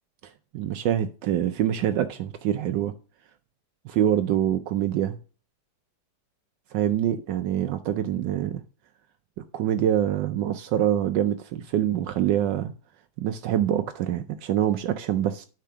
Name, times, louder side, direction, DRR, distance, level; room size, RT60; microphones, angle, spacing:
voice 1, 0.5-2.9 3.8-5.2 6.7-8.6 9.5-12.7 13.2-15.5, right 11 dB, 75° right, 1.2 m, -25 dB
10.0 x 3.8 x 5.9 m
omnidirectional pair, 2.0 m